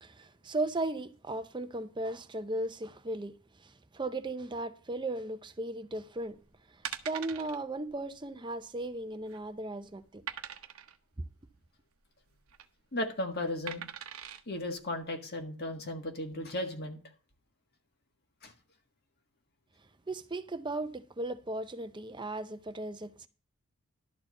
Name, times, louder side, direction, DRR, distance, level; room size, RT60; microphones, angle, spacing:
voice 1, 0.0-6.4 6.7-10.2 20.1-23.3, right 2 dB, 20° right, 0.6 m, -36 dB
sound 1, 6.2-6.4 6.8-7.6 7.9-8.1 8.3-8.4 9.0-9.5 10.3-11.0 12.3-12.7 13.7-14.4 15.0-15.1, right 9 dB, 70° right, 0.9 m, -41 dB
voice 2, 12.9-13.8 14.5-17.0 18.4-18.5, left 1 dB, 45° left, 1.7 m, -35 dB
12.0 x 4.5 x 7.7 m
head